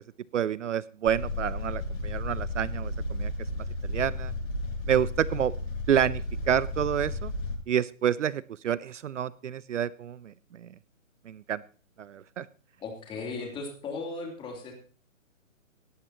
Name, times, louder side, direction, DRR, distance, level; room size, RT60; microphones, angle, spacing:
voice 1, 0.3-3.3 3.8-4.3 4.9-5.5 5.9-7.3 7.7-10.7 11.3-11.6 12.0-12.5, right 9 dB, 65° right, 20 dB, 0.7 m, -28 dB
sound 1, 1.0-7.6, left 1 dB, 50° left, 7.3 m, -33 dB
voice 2, 12.8-14.7, left 3 dB, 15° left, 1 dB, 3.1 m, -36 dB
17.5 x 13.5 x 2.9 m, 0.39 s
hypercardioid pair, 150°, 39 cm